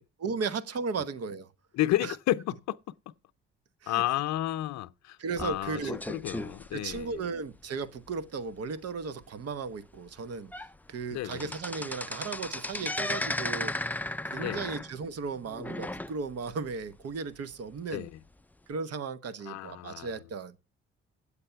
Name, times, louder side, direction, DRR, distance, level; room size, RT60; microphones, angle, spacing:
voice 1, 0.2-1.5 2.0-2.2 3.8-4.0 5.2-6.0 6.7-10.5 10.9-18.1 18.7-20.5, right 4 dB, 55° right, 1.1 m, -36 dB
voice 2, 1.7-2.5 3.9-5.8 6.1-7.1 11.1-11.5 14.4-14.7 17.9-18.1 19.5-20.1, left 15 dB, 70° left, 0.6 m, -31 dB
sound 1, 5.4-7.6 8.1-8.2 8.6-8.7 9.2-9.3 9.9-10.0 10.3-10.7 11.0-16.5 16.9-17.0 17.8-17.9, left 2 dB, 5° left, 0.5 m, -35 dB
8.5 x 8.4 x 5.7 m
supercardioid pair, 60°, 29 cm